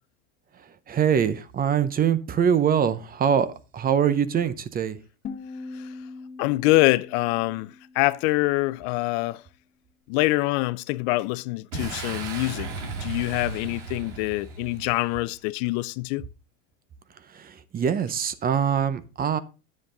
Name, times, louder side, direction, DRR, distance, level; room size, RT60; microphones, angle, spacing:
voice 1, 0.9-3.5 3.7-5.0 17.3-19.4, right 8 dB, 25° right, 0.7 m, -23 dB
sound 1, 5.2-8.2, left 4 dB, 30° left, 1.5 m, -41 dB
voice 2, 6.4-9.4 10.1-12.7 13.0-16.3, left 20 dB, 60° left, 0.5 m, -25 dB
Boom, 11.7-15.3, right 4 dB, 85° right, 2.1 m, -35 dB
9.6 x 7.5 x 3.8 m
supercardioid pair, 115°, 36 cm